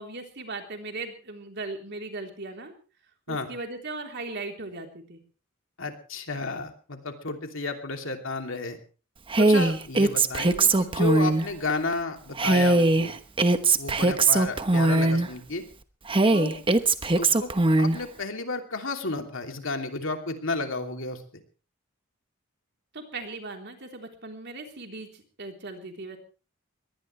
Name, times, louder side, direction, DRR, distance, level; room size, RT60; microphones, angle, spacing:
voice 1, 0.0-2.7 3.3-5.2 22.9-26.2, right 3 dB, 55° right, 3 dB, 3.7 m, -38 dB
voice 2, 5.8-8.8 9.4-13.2 13.8-15.6 16.3-16.6 17.2-17.5 17.8-21.2, left 3 dB, 65° left, 5 dB, 2.9 m, -32 dB
Female speech woman speaking, 9.3-11.5 12.4-15.3 16.1-18.0, right 2 dB, 25° right, 1.0 m, -21 dB
22.5 x 18.5 x 3.3 m, 0.36 s
head